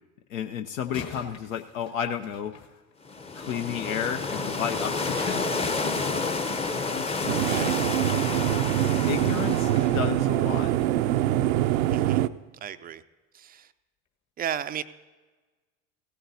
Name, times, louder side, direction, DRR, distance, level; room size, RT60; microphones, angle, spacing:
voice 1, 0.3-2.6 3.3-5.4 6.7-7.3 9.1-10.7, left 8 dB, 75° left, 6 dB, 0.7 m, -32 dB
sound 1, 0.8-3.4 7.2-10.9 11.4-11.6 12.1-12.2, left 6 dB, 40° left, 1.5 m, -47 dB
sound 2, 3.1-10.1, left 3 dB, 15° left, 0.7 m, -30 dB
sound 3, 7.3-12.3, right 13 dB, 75° right, 0.5 m, -24 dB
voice 2, 7.4-7.8 9.8-9.9 11.9-12.3 12.6-13.0 13.3-13.7 14.4-14.8, right 9 dB, 25° right, 12 dB, 0.4 m, -35 dB
16.5 x 13.5 x 2.8 m, 1.3 s
hypercardioid pair, 80°, 41 cm